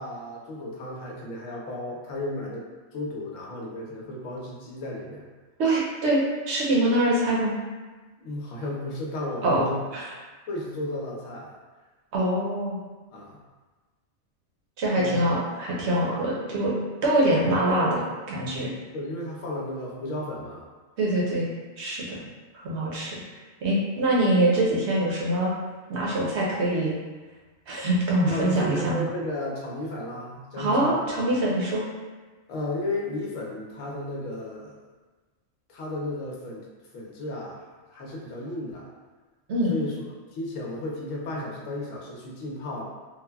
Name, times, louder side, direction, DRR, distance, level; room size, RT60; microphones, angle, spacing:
voice 1, 0.0-5.3 8.2-9.8 10.5-11.5 13.1-13.4 14.9-15.2 16.0-16.2 18.9-20.7 28.3-31.4 32.5-34.7 35.7-36.6 36.9-37.6 37.9-38.9 39.7-40.0 40.3-42.8, left 1 dB, 75° left, -3 dB, 1.0 m, -34 dB
voice 2, 5.6-7.5 9.4-9.6 9.9-10.1 12.1-12.8 14.8-16.7 17.0-18.0 18.3-18.7 21.0-21.5 21.8-22.2 22.5-23.2 23.6-25.5 25.9-27.0 27.7-29.1 30.6-31.8 39.5-39.8, right 1 dB, 60° right, -5 dB, 0.9 m, -24 dB
3.2 x 2.1 x 2.2 m, 1.3 s
omnidirectional pair, 1.4 m